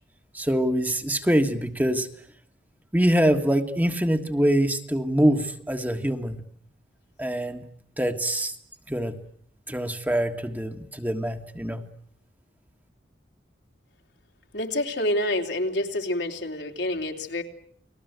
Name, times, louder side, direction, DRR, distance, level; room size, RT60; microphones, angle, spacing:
voice 1, 0.3-2.1 2.9-6.4 7.2-7.6 8.0-8.5 8.9-9.1 9.7-11.8, equal, 10° right, 5 dB, 1.6 m, -24 dB
voice 2, 14.5-17.4, left 1 dB, 75° left, 3 dB, 3.3 m, -27 dB
30.0 x 21.0 x 8.1 m, 0.63 s
head